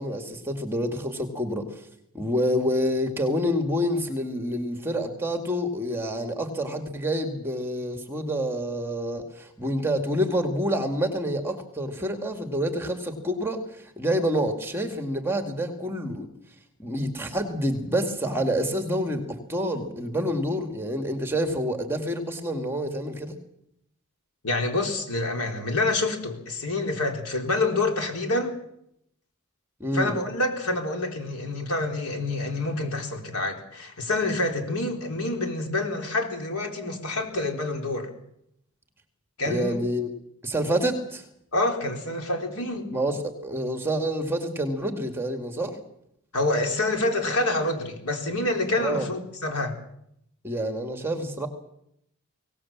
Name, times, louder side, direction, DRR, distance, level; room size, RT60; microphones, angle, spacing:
voice 1, 0.0-1.6 2.1-16.3 16.8-23.4 29.8-30.1 39.5-40.1 40.4-41.2 42.9-45.8 48.8-49.1 50.4-51.5, equal, 10° right, 6 dB, 2.1 m, -27 dB
voice 2, 24.4-28.5 29.9-38.1 39.4-39.8 41.5-42.9 46.3-49.8, left 2 dB, 85° left, 3 dB, 4.2 m, -27 dB
23.5 x 18.5 x 7.4 m, 0.77 s
head